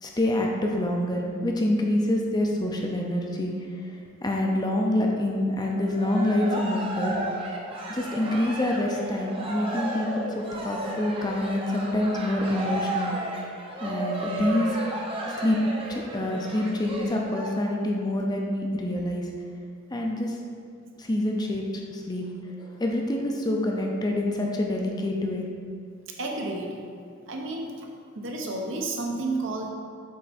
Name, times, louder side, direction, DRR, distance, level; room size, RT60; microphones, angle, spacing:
voice 1, 0.0-7.2 7.9-13.2 13.8-14.8 15.3-15.6 15.9-19.3 19.9-20.4 21.0-21.6 21.9-22.3 22.6-25.5, left 1 dB, 20° left, 0 dB, 0.5 m, -26 dB
Cheering, 5.7-17.5, right 1 dB, 25° right, 0.6 m, -33 dB
voice 2, 26.2-26.8 27.3-27.9 28.1-29.7, right 2 dB, 65° right, 1 dB, 0.7 m, -31 dB
7.4 x 3.3 x 4.2 m, 2.2 s
head